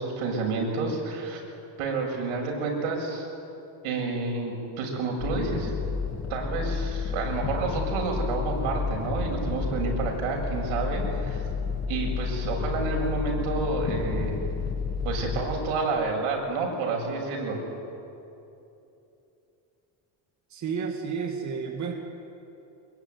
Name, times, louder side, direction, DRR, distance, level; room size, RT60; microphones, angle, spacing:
voice 1, 0.0-1.4 1.8-3.3 3.8-5.7 6.3-11.4 11.9-14.3 15.0-17.6, right 3 dB, 85° right, 0 dB, 7.5 m, -29 dB
sound 1, 5.2-15.5, left 5 dB, 30° left, 2.4 m, -30 dB
voice 2, 20.5-21.9, right 6 dB, 35° right, 2 dB, 2.2 m, -31 dB
25.5 x 22.0 x 9.7 m, 2.9 s
cardioid pair, 155°, 50 cm